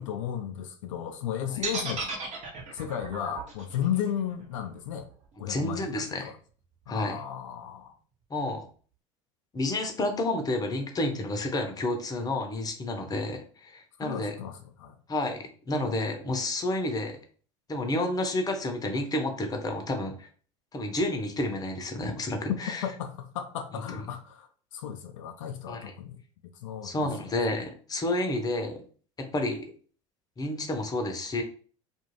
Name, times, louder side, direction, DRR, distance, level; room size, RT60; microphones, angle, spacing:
voice 1, 0.0-2.1 2.7-5.1 5.4-6.4 6.9-8.0 14.0-15.0 22.5-22.6 22.8-26.2 26.6-27.1, left 9 dB, 80° left, 0.4 m, -34 dB
sound 1, 1.6-5.7, right 4 dB, 45° right, 1.0 m, -36 dB
voice 2, 5.5-6.3 6.9-7.2 8.3-8.7 9.5-14.3 15.1-17.2 17.7-20.3 20.7-22.8 23.9-24.0 25.7-25.8 26.8-28.8 29.2-29.6 30.4-31.4, left 2 dB, 25° left, 0.7 m, -30 dB
2.5 x 2.3 x 3.1 m
hypercardioid pair, 80°, 16 cm